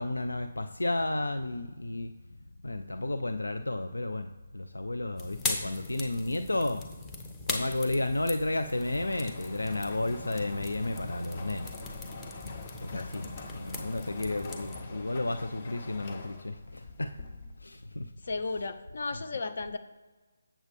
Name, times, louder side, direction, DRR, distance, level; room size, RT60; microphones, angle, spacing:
voice 1, 0.0-2.1 2.6-6.9 7.5-11.7 12.0-12.2 12.8-17.1 17.6-18.1 18.5-18.6 19.1-19.2, left 2 dB, 80° left, 8 dB, 0.5 m, -32 dB
sound 1, 5.2-14.8, left 3 dB, 10° left, 0.9 m, -40 dB
sound 2, 8.4-17.8, left 3 dB, 40° left, 1.1 m, -45 dB
voice 2, 12.9-13.5 18.2-19.8, left 3 dB, 55° left, 9 dB, 0.8 m, -35 dB
8.0 x 7.2 x 3.5 m, 1.3 s
figure-of-eight pair, 150°, 0 cm